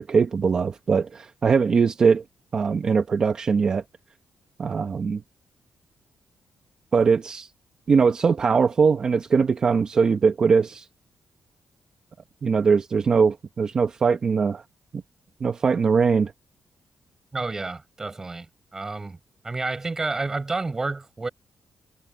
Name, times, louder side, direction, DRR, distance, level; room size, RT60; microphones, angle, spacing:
voice 1, 0.0-2.2 2.5-3.8 4.6-5.2 6.9-7.5 7.9-10.9 12.4-14.6 15.4-16.3, right 5 dB, 40° right, 1.1 m, -21 dB
voice 2, 17.3-18.5 18.7-19.2 19.4-21.3, right 3 dB, 20° right, 7.2 m, -29 dB
cardioid pair, 130°, 2 cm